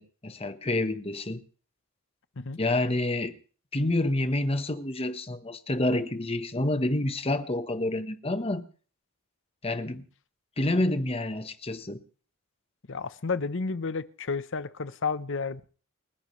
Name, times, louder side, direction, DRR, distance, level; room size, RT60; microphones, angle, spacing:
voice 1, 0.0-1.4 2.6-3.3 3.7-8.6 9.6-10.0 10.6-12.0, left 1 dB, 30° left, 1.2 m, -28 dB
voice 2, 12.9-15.6, left 4 dB, 60° left, 0.9 m, -31 dB
29.5 x 11.0 x 3.2 m
head